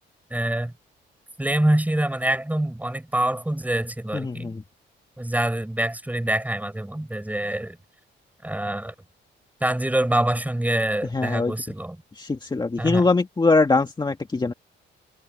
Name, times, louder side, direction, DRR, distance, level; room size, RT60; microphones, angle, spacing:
voice 1, 0.3-0.7 1.4-4.5 5.2-7.8 8.4-8.9 9.6-12.0 12.8-13.1, right 1 dB, 10° right, 5.9 m, -25 dB
voice 2, 4.1-4.6 11.1-11.5 12.2-14.5, left 3 dB, 20° left, 1.9 m, -22 dB
cardioid pair, 90°, 20 cm